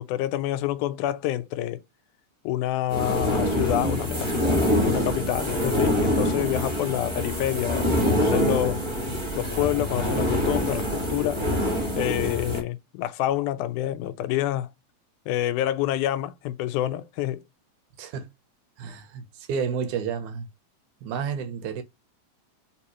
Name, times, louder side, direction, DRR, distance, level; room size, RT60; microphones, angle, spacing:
voice 1, 0.0-1.8 2.4-8.8 9.4-11.4 12.0-14.7 15.3-17.4, left 13 dB, 90° left, 2.0 m, -27 dB
sound 1, 2.9-12.6, equal, 20° right, 0.7 m, -25 dB
voice 2, 18.0-18.3 18.8-20.5 21.0-21.8, right 7 dB, 80° right, 2.3 m, -31 dB
4.4 x 3.6 x 3.0 m
omnidirectional pair, 3.5 m